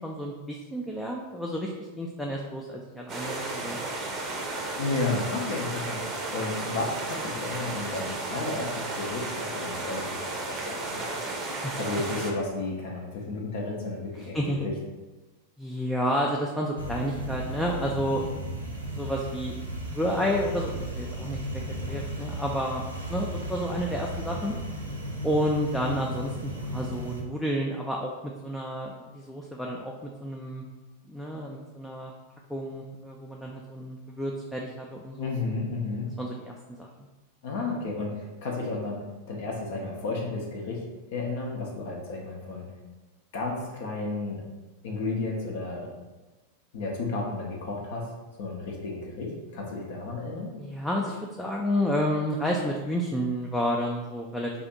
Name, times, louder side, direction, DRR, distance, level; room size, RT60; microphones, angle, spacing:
voice 1, 0.0-1.7 2.0-3.9 11.6-11.8 14.2-14.7 15.6-18.2 18.9-19.5 19.9-22.8 23.1-24.5 25.2-30.6 31.1-32.1 32.5-35.3 36.2-36.9 50.6-54.5, equal, 5° left, -2 dB, 0.3 m, -30 dB
sound 1, 3.1-12.3, right 2 dB, 30° right, 0.6 m, -33 dB
voice 2, 4.8-11.2 11.8-14.7 35.2-36.1 37.4-40.8 41.1-42.7 43.3-44.4 44.8-45.9 46.7-48.1 48.4-50.5, left 3 dB, 55° left, -1 dB, 0.5 m, -32 dB
sound 2, 16.8-27.2, right 1 dB, 85° right, 0.6 m, -35 dB
2.5 x 2.4 x 4.0 m, 1.2 s
figure-of-eight pair, 90°, 0 cm